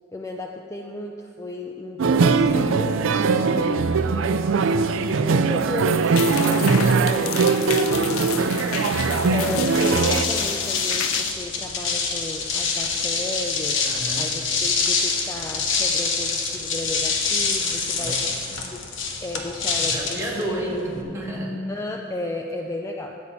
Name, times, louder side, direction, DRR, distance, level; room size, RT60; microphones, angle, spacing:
voice 1, 0.1-4.0 5.0-8.5 9.1-18.2 18.7-18.8 19.2-20.8 21.7-23.2, left 2 dB, 15° left, 2 dB, 0.4 m, -34 dB
sound 1, 2.0-10.3, right 4 dB, 70° right, 0.4 m, -20 dB
sound 2, 6.2-11.3, left 11 dB, 80° left, 0.3 m, -31 dB
voice 2, 8.2-8.9 13.8-14.3 18.0-18.4 19.8-21.7, right 1 dB, 15° right, -5 dB, 1.9 m, -31 dB
sound 3, 9.5-21.0, left 4 dB, 65° left, 1.1 m, -25 dB
12.5 x 8.2 x 4.1 m, 2.7 s
head